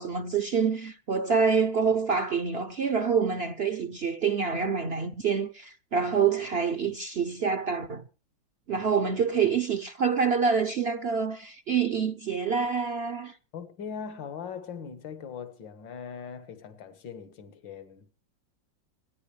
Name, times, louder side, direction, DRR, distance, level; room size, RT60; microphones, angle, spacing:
voice 1, 0.0-8.0 8.7-13.3, right 6 dB, 55° right, 0.7 m, -26 dB
voice 2, 13.5-18.2, left 6 dB, 80° left, 2.1 m, -40 dB
26.5 x 10.0 x 3.3 m
omnidirectional pair, 2.0 m